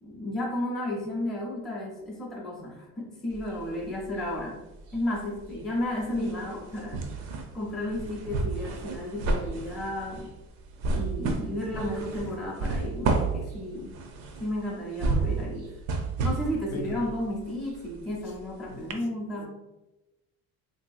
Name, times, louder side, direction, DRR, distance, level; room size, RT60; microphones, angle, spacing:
voice 1, 0.0-4.6 4.9-7.1 7.5-10.3 10.9-13.9 14.4-15.7 16.2-19.5, left 1 dB, ahead, -4 dB, 0.5 m, -33 dB
sound 1, 3.3-4.4 4.7-18.5 18.9-19.0, right 3 dB, 65° right, 0.5 m, -32 dB
voice 2, 16.7-16.9 18.7-18.9 19.3-19.5, equal, 60° left, 2 dB, 0.5 m, -38 dB
3.3 x 2.6 x 2.3 m, 1.0 s
cardioid pair, 165°, 29 cm